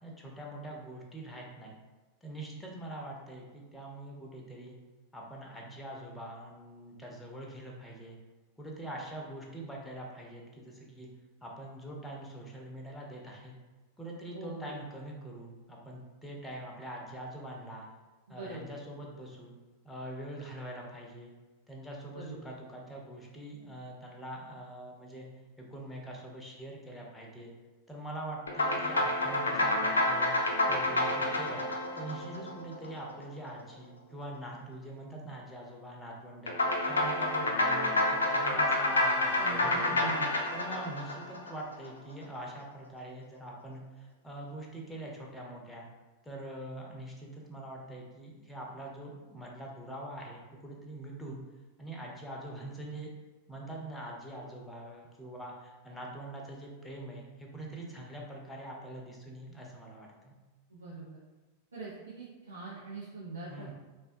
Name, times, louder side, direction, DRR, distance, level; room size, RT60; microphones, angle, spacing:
voice 1, 0.0-1.8 2.2-4.7 5.1-8.2 8.6-11.1 11.4-13.5 14.0-17.9 18.3-19.6 19.8-21.3 21.7-25.3 25.6-27.5 27.9-30.3 30.7-31.7 31.9-36.6 36.9-40.1 40.5-45.9 46.2-51.4 51.8-53.1 53.5-60.4 63.5-63.7, right 1 dB, 10° left, -1 dB, 0.6 m, -43 dB
voice 2, 14.3-14.7 18.3-18.6 22.1-22.4 39.4-40.3 60.7-61.2 61.7-63.7, right 3 dB, 75° right, -8 dB, 0.5 m, -42 dB
sound 1, 28.5-33.1 36.5-41.9, left 2 dB, 70° left, 0.4 m, -29 dB
3.4 x 2.1 x 2.5 m, 1.2 s
figure-of-eight pair, 90°, 0 cm